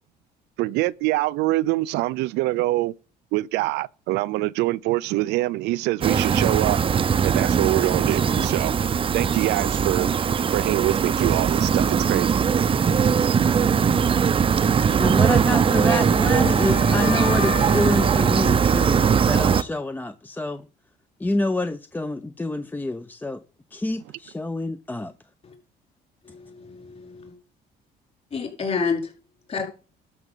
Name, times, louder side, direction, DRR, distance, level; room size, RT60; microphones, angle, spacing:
voice 1, 0.6-2.9 3.3-6.8 7.2-8.7 9.1-10.1 10.5-12.3, right 18 dB, 85° right, 0.5 m, -24 dB
sound 1, 6.0-19.6, right 7 dB, 30° right, 0.6 m, -20 dB
voice 2, 15.0-20.7 21.2-23.4 23.7-25.1, left 1 dB, 10° left, 0.6 m, -27 dB
Wind instrument woodwind instrument, 15.6-19.7, left 15 dB, 75° left, 0.8 m, -35 dB
voice 3, 26.2-27.3 28.3-29.0 29.5-29.6, left 5 dB, 40° left, 4.8 m, -29 dB
12.5 x 6.1 x 5.5 m
cardioid pair, 110°, 17 cm